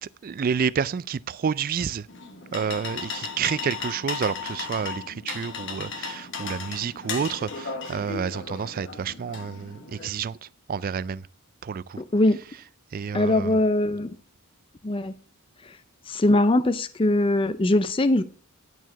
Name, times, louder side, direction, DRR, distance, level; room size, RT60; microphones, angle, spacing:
voice 1, 0.0-2.1 2.5-10.4 10.7-11.2 11.6-12.0 12.9-13.6, right 6 dB, 40° right, 0.3 m, -29 dB
sound 1, 2.1-10.1, left 5 dB, 55° left, 1.2 m, -36 dB
voice 2, 12.0-12.4 13.1-14.2 14.8-15.1 16.1-18.2, left 1 dB, 25° left, 0.5 m, -21 dB
11.0 x 4.6 x 5.8 m
head